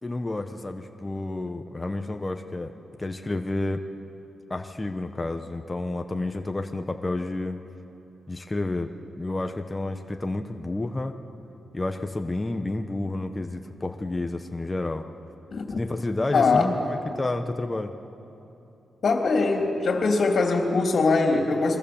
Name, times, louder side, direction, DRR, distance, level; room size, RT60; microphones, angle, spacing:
voice 1, 0.0-2.7 3.0-3.8 4.5-7.6 8.3-11.2 11.7-15.1 15.7-17.9, left 2 dB, 20° left, 5 dB, 1.1 m, -30 dB
voice 2, 16.3-16.7 19.0-21.8, left 3 dB, 55° left, 2 dB, 3.3 m, -22 dB
28.5 x 22.5 x 7.2 m, 2.9 s
cardioid pair, 90°, 0 cm